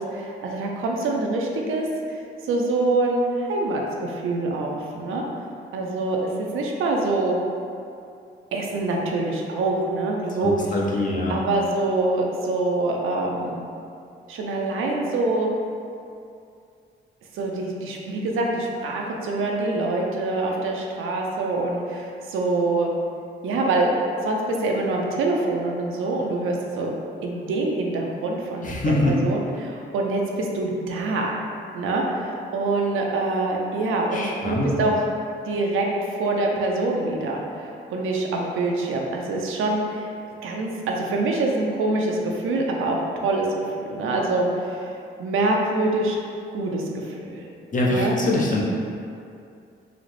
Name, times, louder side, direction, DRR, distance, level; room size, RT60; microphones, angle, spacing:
voice 1, 0.0-5.2 5.7-7.4 8.5-10.7 11.3-13.6 14.3-15.5 17.3-22.9 23.4-23.9 24.2-27.0 27.2-31.4 31.7-34.9 35.5-35.9 36.2-40.1 40.4-44.9 45.2-46.2 46.5-47.5 47.9-48.1, right 2 dB, 80° right, 0 dB, 0.5 m, -25 dB
voice 2, 10.4-11.3 28.6-29.2 34.1-34.8 47.7-48.6, left 2 dB, 40° left, -3 dB, 0.7 m, -24 dB
3.9 x 2.0 x 3.2 m, 2.5 s
cardioid pair, 70°, 21 cm